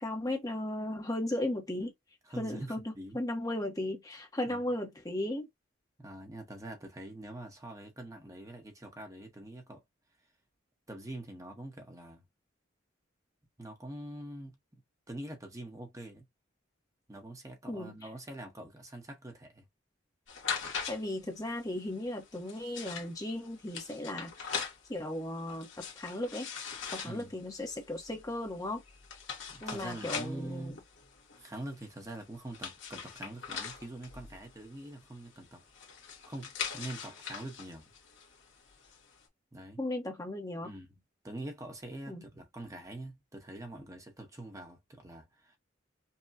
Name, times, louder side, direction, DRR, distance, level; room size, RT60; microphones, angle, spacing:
voice 1, 0.0-1.9 2.4-5.5 17.7-18.0 20.9-24.5 24.9-26.5 26.9-28.8 29.6-30.8 39.8-40.7 42.1-42.2, left 1 dB, 20° left, 0.9 m, -36 dB
voice 2, 2.2-3.2 4.5-4.6 6.0-9.8 10.9-12.2 13.6-14.8 15.1-16.2 17.1-19.7 27.0-27.3 29.5-30.8 31.4-35.6 36.3-37.9 39.5-39.8 40.6-40.9 41.2-45.6, right 1 dB, 15° right, 0.9 m, -44 dB
sound 1, 20.3-39.2, left 6 dB, 70° left, 1.5 m, -42 dB
5.5 x 2.2 x 2.6 m
head